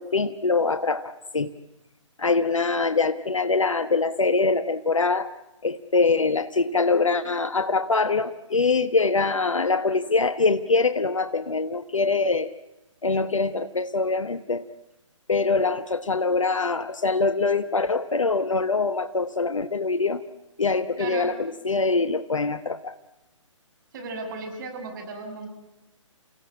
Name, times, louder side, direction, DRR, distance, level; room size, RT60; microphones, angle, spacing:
voice 1, 0.0-1.5 2.2-5.3 5.6-12.5 13.0-14.7 15.3-20.2 20.6-22.9, left 4 dB, 75° left, 11 dB, 1.2 m, -24 dB
voice 2, 23.9-25.5, right 3 dB, 40° right, 3 dB, 6.4 m, -35 dB
30.0 x 16.5 x 8.6 m, 0.96 s
figure-of-eight pair, 135°, 16 cm